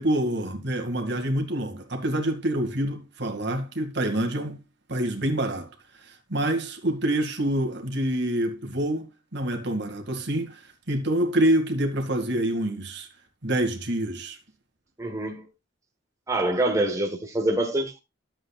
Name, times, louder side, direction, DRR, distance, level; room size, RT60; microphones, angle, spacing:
voice 1, 0.0-4.6 4.9-5.7 6.0-10.6 10.9-13.1 13.4-14.4, right 1 dB, 65° right, 2.2 m, -26 dB
voice 2, 15.0-15.4 16.3-18.0, right 1 dB, 15° right, 1.4 m, -25 dB
13.0 x 7.8 x 2.4 m
head